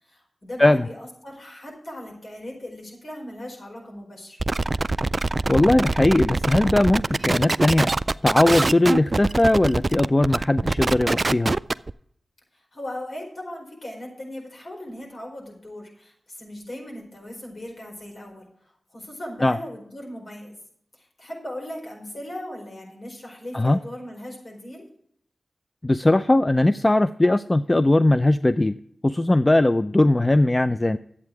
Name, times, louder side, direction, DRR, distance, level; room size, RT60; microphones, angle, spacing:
voice 1, 0.0-4.4 12.5-18.5 18.9-20.5 20.9-24.8, left 1 dB, 60° left, -1 dB, 4.7 m, -38 dB
sound 1, 4.4-11.9, right 3 dB, 45° right, 0.3 m, -24 dB
voice 2, 5.5-7.9 8.2-11.5 19.4-19.6 23.5-23.8 25.8-28.8 29.0-31.0, left 1 dB, 25° left, 13 dB, 0.4 m, -19 dB
11.0 x 8.5 x 4.7 m, 0.69 s
cardioid pair, 45°, 0 cm